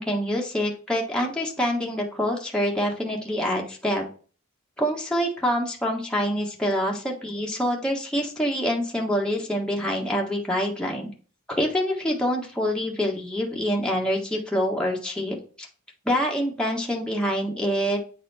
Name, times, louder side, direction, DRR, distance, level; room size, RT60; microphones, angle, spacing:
voice 1, 0.0-4.0 4.8-11.1 11.5-15.7 16.0-18.0, equal, 5° left, -2 dB, 1.5 m, -26 dB
9.3 x 4.3 x 4.2 m, 0.39 s
head